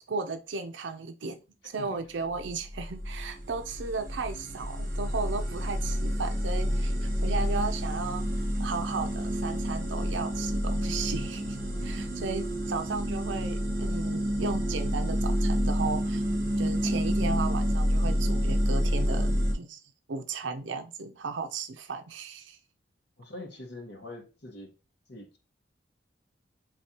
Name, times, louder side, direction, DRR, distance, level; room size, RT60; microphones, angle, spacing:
voice 1, 0.1-1.4 1.6-8.2 8.6-16.2 16.6-19.8 20.1-22.6, right 4 dB, 75° right, 0.5 m, -35 dB
sound 1, 2.3-19.5, equal, 45° right, 1.7 m, -29 dB
voice 2, 23.2-24.7 25.1-25.4, left 2 dB, 65° left, 1.2 m, -43 dB
4.9 x 3.3 x 2.8 m
head